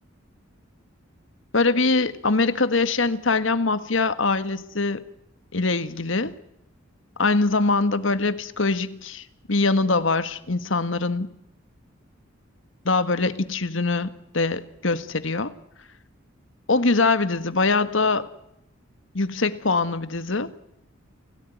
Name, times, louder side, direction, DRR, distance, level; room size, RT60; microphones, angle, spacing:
voice 1, 1.5-5.0 5.5-6.3 7.2-11.3 12.9-15.5 16.7-18.3 19.1-20.5, left 3 dB, 70° left, 12 dB, 1.7 m, -23 dB
29.0 x 17.5 x 9.4 m, 0.81 s
head